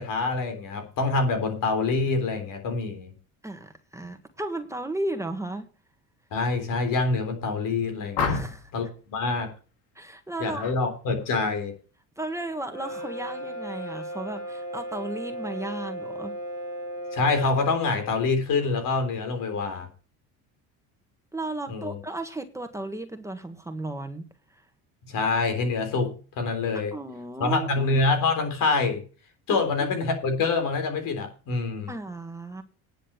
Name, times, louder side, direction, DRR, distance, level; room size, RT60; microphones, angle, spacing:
voice 1, 0.0-3.1 6.3-8.4 8.7-8.9 9.1-9.5 10.4-11.7 17.1-19.9 21.7-22.0 25.0-26.9 27.4-29.0 29.5-31.9, left 3 dB, 60° left, 6 dB, 3.7 m, -26 dB
voice 2, 3.4-5.7 8.2-8.7 9.9-10.7 12.2-16.3 21.3-24.7 26.9-27.7 29.5-29.6 31.9-32.6, right 2 dB, 10° right, 6 dB, 1.6 m, -34 dB
sound 1, 8.1-8.8 10.5-10.8 11.2-11.6, left 5 dB, 80° left, 2.4 m, -30 dB
Brass instrument, 12.7-17.6, right 1 dB, 45° left, 6.5 m, -36 dB
10.0 x 6.6 x 8.0 m, 0.38 s
supercardioid pair, 90°, 36 cm